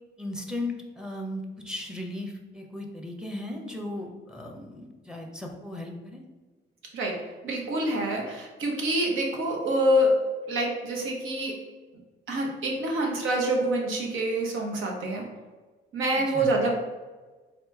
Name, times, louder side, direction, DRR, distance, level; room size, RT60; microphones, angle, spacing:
voice 1, 0.2-6.2 16.2-16.5, left 1 dB, 5° right, 1 dB, 0.7 m, -36 dB
voice 2, 7.4-10.1 10.5-11.5 12.3-15.2 15.9-16.7, right 1 dB, 80° right, 0 dB, 1.0 m, -26 dB
4.0 x 2.9 x 3.5 m, 1.3 s
cardioid pair, 90°, 20 cm